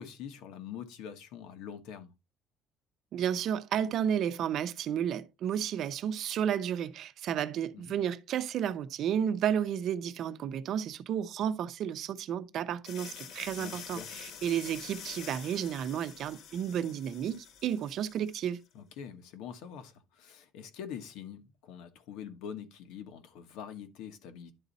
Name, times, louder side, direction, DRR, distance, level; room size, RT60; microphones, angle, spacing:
voice 1, 0.0-2.1 7.7-8.0 13.6-14.1 18.7-24.5, left 8 dB, 80° left, 1.3 m, -44 dB
voice 2, 3.1-18.6, right 9 dB, 50° right, 0.7 m, -32 dB
sound 1, 12.8-18.5, left 7 dB, 60° left, 1.3 m, -47 dB
10.5 x 4.1 x 4.0 m
cardioid pair, 160°, 0 cm